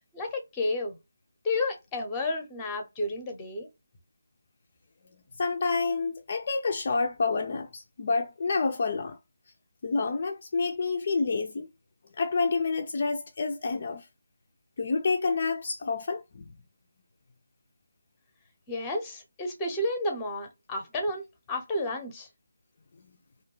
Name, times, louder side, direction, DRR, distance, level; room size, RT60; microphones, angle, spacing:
voice 1, 0.1-1.0 1.4-3.7 18.7-22.3, left 2 dB, 15° left, 0.7 m, -31 dB
voice 2, 5.4-9.2 9.8-11.7 12.2-14.1 14.8-16.4, left 4 dB, 45° left, 0.3 m, -28 dB
2.5 x 2.2 x 2.8 m
figure-of-eight pair, 160°, 0 cm